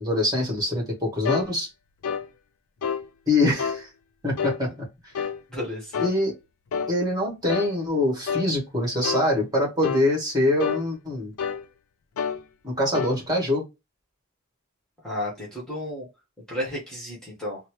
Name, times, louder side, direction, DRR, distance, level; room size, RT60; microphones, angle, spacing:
voice 1, 0.0-1.7 3.3-3.9 4.2-4.7 6.0-6.3 6.9-11.3 12.6-13.6, left 1 dB, 20° right, 1.6 m, -24 dB
sound 1, 1.3-1.5 2.0-2.3 2.8-3.1 3.6-3.8 4.4-4.6 5.2-5.4 5.9-6.2 6.7-6.9 7.5-7.7 8.3-8.5 9.0-9.3 9.8-10.1 10.6-10.9 11.4-11.7 12.2-12.4 12.9-13.2, left 6 dB, 85° left, 0.4 m, -28 dB
voice 2, 5.5-6.0 15.0-16.1 16.5-17.6, left 1 dB, 5° left, 1.4 m, -32 dB
4.1 x 2.1 x 3.0 m
head